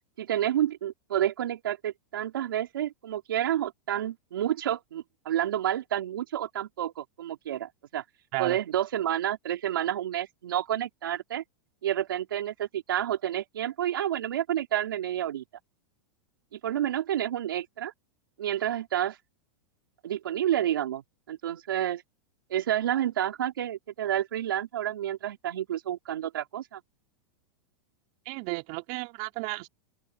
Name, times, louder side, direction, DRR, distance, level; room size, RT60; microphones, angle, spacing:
voice 1, 0.2-8.0 8.4-11.4 11.8-15.4 16.5-17.9 18.4-19.2 20.0-21.0 21.3-22.0 22.5-26.8, right 11 dB, 90° right, 4.1 m, -29 dB
voice 2, 28.2-29.7, right 29 dB, 55° right, 4.6 m, -33 dB
open air
supercardioid pair, 130°, 11 cm